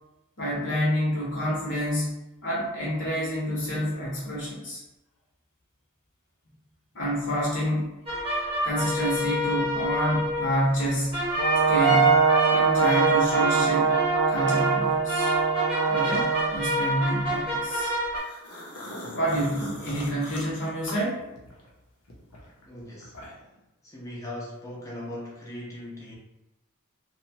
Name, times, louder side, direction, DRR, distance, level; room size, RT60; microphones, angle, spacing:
voice 1, 0.4-2.1 2.4-4.8 6.9-7.9 8.6-11.3 11.7-14.0 14.3-15.3 15.9-17.9 19.1-21.2, equal, 55° left, -6 dB, 0.9 m, -28 dB
sound 1, 8.1-18.2, right 1 dB, 25° right, 1.0 m, -27 dB
Brass instrument, 11.4-16.6, right 6 dB, 85° right, 0.5 m, -23 dB
sound 2, 18.1-21.7 22.1-23.6, left 1 dB, 90° left, 0.7 m, -41 dB
voice 2, 22.6-23.1 23.8-26.1, left 1 dB, 15° left, -5 dB, 0.6 m, -39 dB
2.8 x 2.2 x 2.7 m, 0.95 s
head